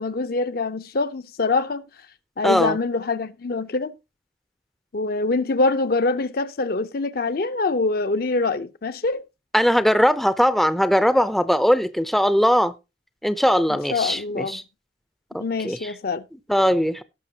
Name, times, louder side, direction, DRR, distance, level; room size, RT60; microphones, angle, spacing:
voice 1, 0.0-1.8 2.4-3.9 4.9-9.2 13.9-14.6 15.4-16.2, left 3 dB, 55° left, 0.6 m, -24 dB
voice 2, 2.4-2.8 9.5-12.7 13.2-14.6 15.6-15.9 16.5-17.0, equal, ahead, 0.5 m, -20 dB
18.0 x 6.1 x 2.8 m
head